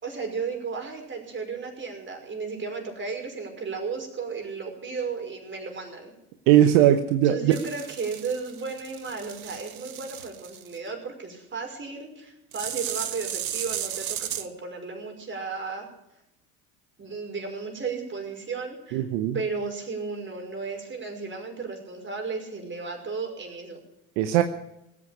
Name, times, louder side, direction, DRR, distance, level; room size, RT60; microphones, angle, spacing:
voice 1, 0.0-6.1 7.2-15.9 17.0-19.1 19.3-23.8, right 4 dB, 30° right, 3 dB, 5.6 m, -34 dB
voice 2, 6.5-7.5 18.9-19.4 24.2-24.4, right 12 dB, 65° right, 8 dB, 1.1 m, -19 dB
sound 1, 7.5-10.8 12.5-14.5, right 11 dB, 90° right, 1.0 m, -35 dB
18.5 x 8.6 x 8.7 m, 0.86 s
hypercardioid pair, 75°, 41 cm